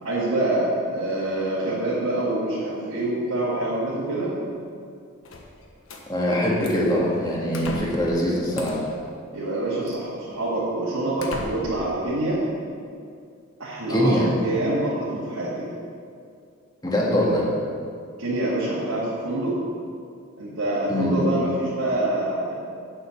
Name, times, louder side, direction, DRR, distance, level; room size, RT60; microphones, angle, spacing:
voice 1, 0.0-4.3 9.3-12.4 13.6-15.7 18.2-19.5 20.4-22.5, right 1 dB, 90° right, -9 dB, 2.3 m, -26 dB
sound 1, 5.2-6.0 6.6-6.9 7.5-8.1 8.5-9.0 9.9-10.0 10.6-10.7 11.2-11.9, left 2 dB, 80° left, 1.3 m, -35 dB
voice 2, 6.1-8.8 13.9-14.3 16.8-17.5 20.9-21.2, equal, 20° left, -4 dB, 1.8 m, -22 dB
9.1 x 7.9 x 5.9 m, 2.3 s
head